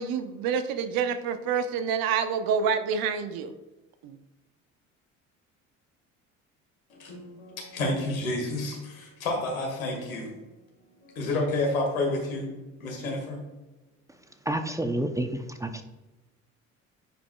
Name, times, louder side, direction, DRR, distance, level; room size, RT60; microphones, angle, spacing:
voice 1, 0.0-3.5 4.0-4.2, right 6 dB, 60° right, 9 dB, 0.8 m, -27 dB
voice 2, 6.9-10.3 11.0-12.5 12.8-13.4, left 2 dB, 85° left, 0 dB, 1.8 m, -30 dB
voice 3, 14.1-15.8, right 1 dB, 10° right, 7 dB, 0.6 m, -30 dB
10.0 x 4.9 x 2.3 m, 1.1 s
hypercardioid pair, 65°, 40 cm